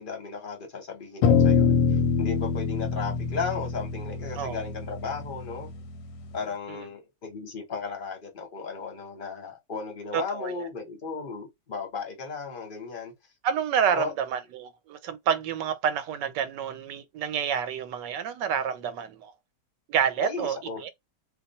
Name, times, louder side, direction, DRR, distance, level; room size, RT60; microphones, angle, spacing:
voice 1, 0.0-1.8 2.2-5.7 6.3-13.1 13.9-14.1 20.2-20.8, left 5 dB, 35° left, 1.0 m, -35 dB
sound 1, 1.2-5.7, left 5 dB, 90° left, 1.3 m, -24 dB
voice 2, 10.1-10.7 13.4-19.3 19.9-20.9, right 8 dB, 80° right, 1.2 m, -29 dB
2.8 x 2.3 x 4.0 m
omnidirectional pair, 1.9 m